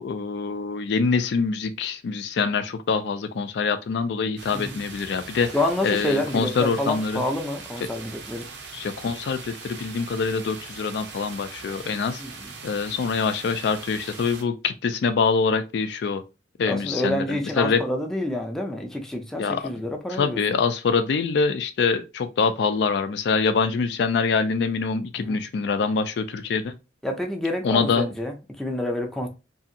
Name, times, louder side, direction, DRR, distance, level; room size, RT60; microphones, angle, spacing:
voice 1, 0.0-5.6 5.8-7.2 8.7-12.2 12.6-16.2 16.6-17.8 19.4-19.6 20.1-26.7 27.6-28.1, left 5 dB, 65° left, 0.3 m, -25 dB
sound 1, 4.4-14.4, right 4 dB, 70° right, 0.6 m, -41 dB
voice 2, 5.5-8.5 12.2-12.5 16.7-20.4 25.2-25.4 27.0-29.3, left 1 dB, 5° left, 0.4 m, -28 dB
2.7 x 2.5 x 2.6 m
head